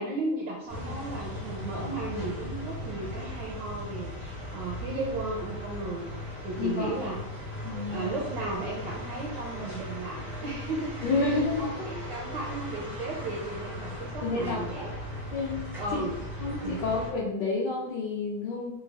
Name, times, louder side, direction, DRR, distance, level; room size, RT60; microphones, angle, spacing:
voice 1, 0.0-6.1 6.4-7.2 7.9-14.9 15.8-16.2 16.6-16.9, right 2 dB, 80° right, -1 dB, 1.0 m, -35 dB
sound 1, 0.7-17.1, equal, 5° right, 0.3 m, -38 dB
voice 2, 6.6-7.1 7.6-8.1 11.0-11.7 14.2-14.8 15.3-16.0 16.4-18.7, left 3 dB, 75° left, -3 dB, 1.0 m, -30 dB
3.9 x 2.2 x 3.3 m, 0.85 s
omnidirectional pair, 2.4 m